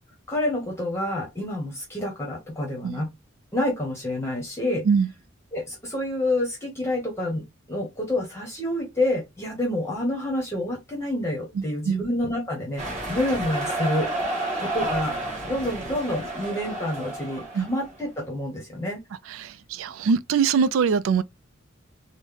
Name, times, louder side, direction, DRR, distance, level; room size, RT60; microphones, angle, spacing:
voice 1, 0.3-3.1 3.5-4.9 5.5-12.8 13.1-14.1 14.6-15.2 15.4-19.0, left 1 dB, 15° left, 0.9 m, -28 dB
voice 2, 11.6-12.0 17.5-17.7 19.3-21.2, right 6 dB, 70° right, 0.3 m, -23 dB
sound 1, 12.8-17.9, right 1 dB, 35° right, 1.4 m, -30 dB
3.8 x 2.1 x 3.2 m
head